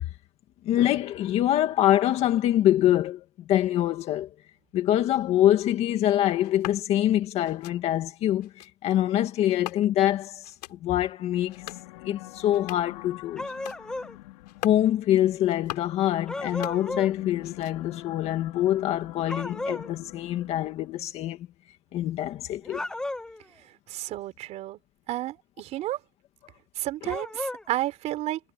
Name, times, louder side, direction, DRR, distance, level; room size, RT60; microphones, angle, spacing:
voice 1, 0.6-4.3 4.7-11.6 12.0-13.5 14.6-21.4 21.9-22.8, left 12 dB, 30° left, 1.9 m, -25 dB
sound 1, 6.4-6.8 7.4-7.8 8.4-8.7 9.5-10.1 10.4-10.8 11.4-11.9 12.4-13.0 13.4-13.8 14.4-14.9 15.4-16.0 16.4-17.1 17.4-18.0, left 15 dB, 85° left, 7.7 m, -42 dB
sound 2, 11.2-21.1, left 19 dB, 65° left, 3.9 m, -46 dB
sound 3, 13.4-14.2 16.3-17.1 19.3-19.9 22.6-23.4 27.1-27.6, left 2 dB, 5° left, 0.6 m, -34 dB
voice 2, 23.9-24.8 25.1-26.0 26.8-28.4, right 15 dB, 30° right, 5.2 m, -31 dB
supercardioid pair, 170°, 21 cm